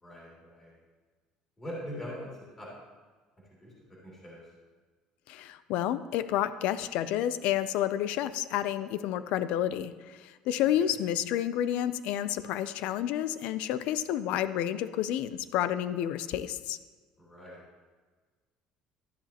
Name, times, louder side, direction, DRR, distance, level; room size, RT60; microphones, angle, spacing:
voice 1, 0.0-0.7 1.6-2.3 2.6-2.7 3.6-4.4 17.2-17.6, equal, 15° left, -6 dB, 2.8 m, -42 dB
voice 2, 5.3-16.8, left 11 dB, 65° left, 14 dB, 0.5 m, -30 dB
12.5 x 10.0 x 2.9 m, 1.4 s
cardioid pair, 160°, 2 cm